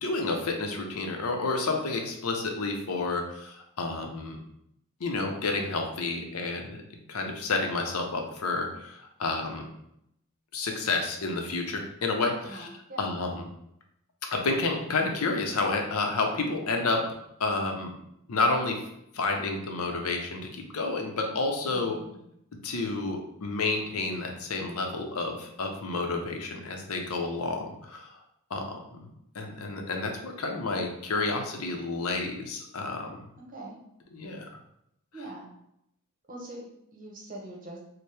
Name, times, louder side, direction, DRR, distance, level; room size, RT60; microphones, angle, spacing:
voice 1, 0.0-4.4 5.0-6.8 7.1-9.6 10.5-12.7 13.0-13.4 14.3-17.0 17.4-17.9 18.3-18.8 19.1-22.0 22.6-28.1 28.5-29.1 29.3-33.2 34.1-34.5, left 3 dB, 80° left, 3 dB, 0.6 m, -30 dB
voice 2, 12.4-13.0 21.7-22.2 33.4-33.8 35.1-35.5 36.3-37.8, right 1 dB, 35° right, -2 dB, 0.9 m, -43 dB
4.4 x 2.1 x 3.3 m, 0.77 s
head